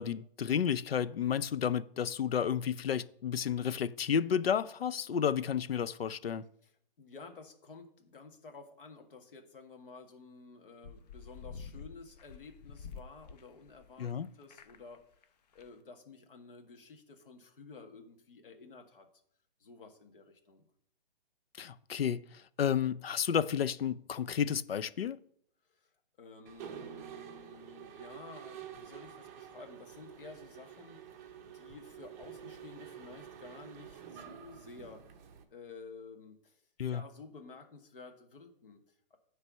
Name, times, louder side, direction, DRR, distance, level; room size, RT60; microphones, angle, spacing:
voice 1, 0.0-6.4 14.0-14.3 21.6-22.2 22.6-25.2 36.8-37.0, left 8 dB, 85° left, 0.6 m, -31 dB
voice 2, 6.6-19.1 19.6-20.6 25.6-25.9 26.2-35.0 35.5-36.6 36.9-39.2, left 4 dB, 65° left, 1.7 m, -52 dB
sound 1, 10.8-14.1 14.4-15.0 15.2-15.3 15.5-15.7, left 5 dB, 45° left, 0.7 m, -48 dB
Mechanisms, 26.5-35.4, right 9 dB, 20° right, 0.6 m, -49 dB
9.8 x 3.4 x 6.2 m
hypercardioid pair, 150°, 29 cm